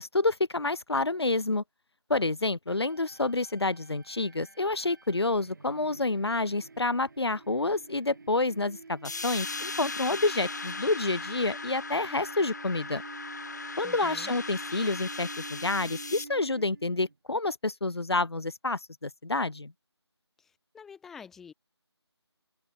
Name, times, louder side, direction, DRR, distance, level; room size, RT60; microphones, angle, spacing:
voice 1, 0.0-1.6 2.1-13.0 13.8-19.7, left 2 dB, 65° left, 1.7 m, -28 dB
sound 1, 2.7-17.1, right 4 dB, 45° right, 5.6 m, -47 dB
sound 2, 9.0-16.2, left 4 dB, 40° left, 2.2 m, -38 dB
voice 2, 13.8-14.4 20.4-21.5, left 6 dB, ahead, 0.8 m, -48 dB
figure-of-eight pair, 160°, 14 cm